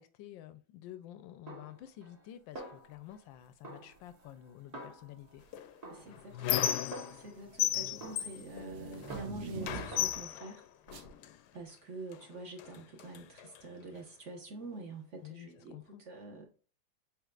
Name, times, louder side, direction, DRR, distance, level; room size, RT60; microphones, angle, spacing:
voice 1, 0.0-5.4 15.2-16.0, left 12 dB, 90° left, 1.3 m, -50 dB
Snare drum, 1.5-2.3 2.6-3.3 3.6-5.4 5.8-7.5 8.0-9.6 9.9-10.2, right 1 dB, 25° right, 1.1 m, -49 dB
sound 1, 4.0-4.2 5.2-5.7 6.0-10.3 10.9-11.1, right 5 dB, 75° right, 1.6 m, -47 dB
Squeak, 5.5-7.3 7.6-9.3 9.6-11.3 12.1-12.2 12.6-13.6, left 12 dB, 70° left, 1.0 m, -35 dB
voice 2, 5.9-6.8 7.1-10.6 11.5-15.7 16.0-16.5, right 2 dB, 45° right, 1.4 m, -46 dB
7.2 x 3.1 x 2.4 m
omnidirectional pair, 2.0 m